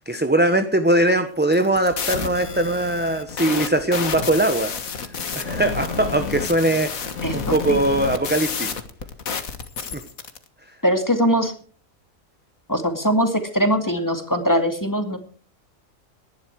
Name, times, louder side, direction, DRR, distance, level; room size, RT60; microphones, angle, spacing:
voice 1, 0.1-5.0 5.3-8.8 9.9-10.0 10.6-10.8, right 1 dB, 10° right, 8 dB, 0.9 m, -21 dB
sound 1, 1.4-10.4, left 5 dB, 75° left, 1.9 m, -30 dB
voice 2, 7.2-7.8 10.8-11.5 12.7-15.2, equal, 15° left, 7 dB, 2.2 m, -21 dB
19.0 x 11.0 x 4.7 m, 0.43 s
omnidirectional pair, 1.5 m